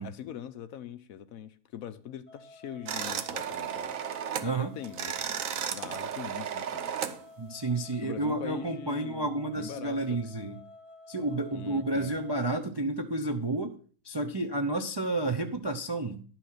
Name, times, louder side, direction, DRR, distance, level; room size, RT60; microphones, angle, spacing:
voice 1, 0.0-5.2 5.7-7.2 8.0-10.3 11.5-12.2, left 9 dB, 70° left, 1.1 m, -43 dB
sound 1, 2.3-12.5, left 1 dB, 50° left, 2.3 m, -51 dB
sound 2, 2.9-4.5 4.8-7.2, right 8 dB, 65° right, 1.1 m, -34 dB
voice 2, 4.4-4.7 7.4-10.6 11.1-13.8 14.0-16.2, right 2 dB, 35° right, 0.4 m, -31 dB
11.0 x 6.1 x 5.7 m
omnidirectional pair, 1.6 m